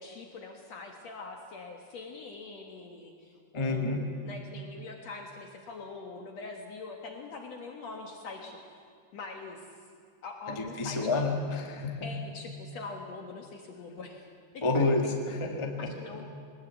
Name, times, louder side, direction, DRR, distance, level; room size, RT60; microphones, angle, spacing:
voice 1, 0.0-8.6 9.1-9.6 10.2-11.3 12.0-14.3 14.5-15.4 15.8-16.2, left 3 dB, 60° left, 2 dB, 2.5 m, -43 dB
voice 2, 3.5-4.1 10.5-12.1 14.6-15.9, left 3 dB, 15° left, 3 dB, 1.1 m, -29 dB
21.5 x 20.0 x 8.3 m, 2.2 s
omnidirectional pair, 3.7 m